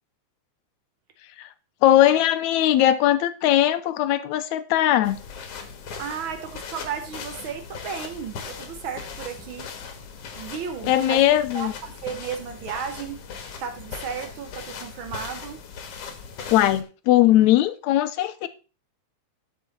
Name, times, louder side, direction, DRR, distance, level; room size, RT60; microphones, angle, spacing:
voice 1, 1.8-5.2 10.9-11.7 16.5-18.5, left 13 dB, 80° left, 1.9 m, -19 dB
sound 1, 5.0-16.8, left 6 dB, 60° left, 2.0 m, -39 dB
voice 2, 6.0-9.7 10.3-13.2 13.6-15.6, right 7 dB, 80° right, 1.1 m, -34 dB
12.0 x 5.5 x 4.0 m
omnidirectional pair, 3.5 m